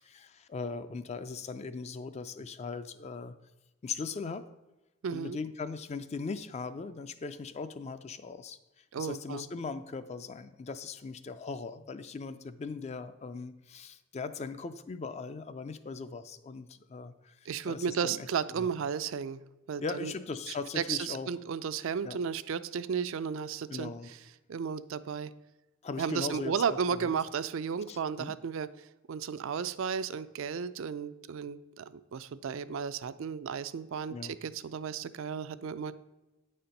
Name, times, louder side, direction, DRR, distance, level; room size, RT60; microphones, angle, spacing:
voice 1, 0.0-3.4 3.8-4.5 5.1-18.3 18.5-18.7 19.8-21.3 22.0-22.2 23.7-24.1 25.8-27.1 27.9-28.4 34.1-34.4, left 4 dB, 30° left, 12 dB, 0.3 m, -39 dB
voice 2, 5.0-5.4 8.9-9.4 17.5-19.4 19.7-20.1 20.5-23.9 24.5-25.3 26.0-35.9, right 6 dB, 65° right, 13 dB, 0.3 m, -34 dB
8.7 x 4.3 x 5.1 m, 1.0 s
head